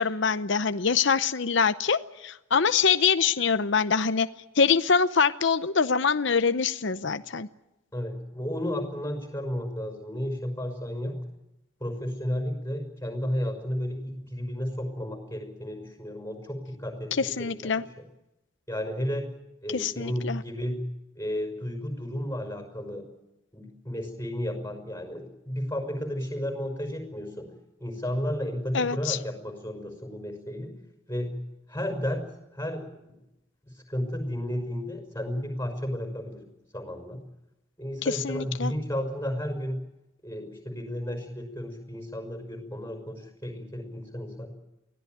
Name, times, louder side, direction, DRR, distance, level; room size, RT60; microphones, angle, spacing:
voice 1, 0.0-4.3 4.6-7.5 17.1-17.8 19.7-20.4 28.7-29.2 38.0-38.7, left 5 dB, 60° left, 11 dB, 0.7 m, -24 dB
voice 2, 7.9-11.2 11.8-17.8 18.7-19.3 19.6-20.9 21.2-23.1 23.5-27.5 27.8-30.7 31.1-31.3 31.7-32.2 32.5-33.1 33.7-36.4 36.7-37.2 37.8-39.8 40.2-44.5, equal, 10° left, 4 dB, 5.7 m, -33 dB
24.0 x 16.5 x 9.3 m, 0.91 s
head